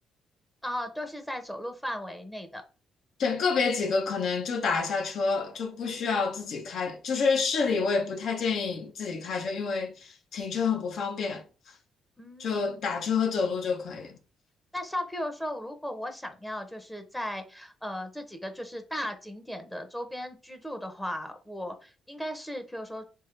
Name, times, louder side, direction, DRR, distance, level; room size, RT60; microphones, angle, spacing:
voice 1, 0.6-2.6 12.2-12.8 14.7-23.1, left 1 dB, 5° left, 0.7 m, -36 dB
voice 2, 3.2-11.4 12.4-14.2, left 5 dB, 65° left, 0.8 m, -28 dB
3.6 x 2.7 x 3.2 m
cardioid pair, 90°, 0 cm